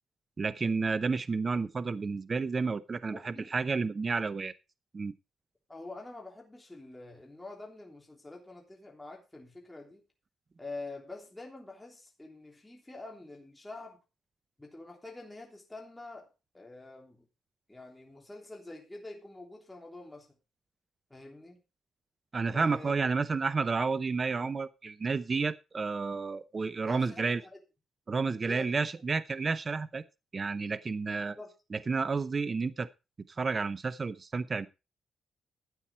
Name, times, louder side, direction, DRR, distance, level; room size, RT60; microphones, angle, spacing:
voice 1, 0.4-4.5 4.9-5.1 22.3-27.4 28.1-30.0 30.3-31.4 31.7-32.9 33.3-34.7, right 4 dB, 30° right, 0.7 m, -31 dB
voice 2, 3.1-3.5 5.7-10.0 10.6-14.0 14.6-17.2 17.7-20.3 21.1-21.6 22.5-22.9 26.8-27.5 28.4-29.0 31.4-31.5, left 2 dB, 10° left, 3.3 m, -46 dB
13.0 x 9.0 x 4.4 m
cardioid pair, 135°, 0 cm